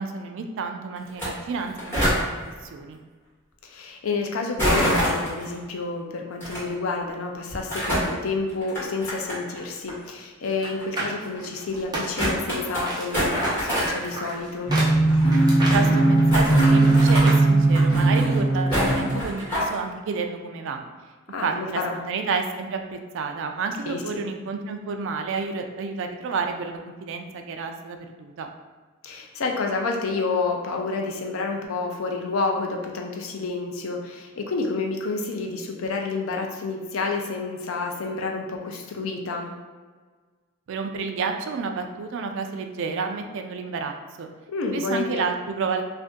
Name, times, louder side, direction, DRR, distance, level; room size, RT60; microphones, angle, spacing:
voice 1, 0.0-2.2 2.6-3.0 15.7-20.8 21.4-28.5 40.7-44.3 44.7-45.8, right 4 dB, 65° right, 5 dB, 0.4 m, -30 dB
sound 1, 1.1-1.3 1.5-2.2 4.6-5.4 6.4-6.6 7.5-8.1 8.6-9.6 9.9-10.0 10.8-10.9 11.4-11.5 11.7-11.8 12.2-12.8 13.1-14.1 14.4-14.5 14.7-14.8 14.9-15.9 16.3-17.2 17.7-18.4 18.7-19.7, equal, 10° left, 1.5 m, -25 dB
voice 2, 3.6-14.7 21.3-22.0 23.9-24.2 29.0-39.5 44.5-45.3, left 3 dB, 70° left, 2 dB, 0.5 m, -29 dB
sound 2, 10.5-12.5 12.8-17.4 17.7-17.8, right 2 dB, 20° right, 0.8 m, -32 dB
sound 3, 14.7-19.2, right 2 dB, 45° left, 1.2 m, -18 dB
2.6 x 2.5 x 3.6 m, 1.4 s
head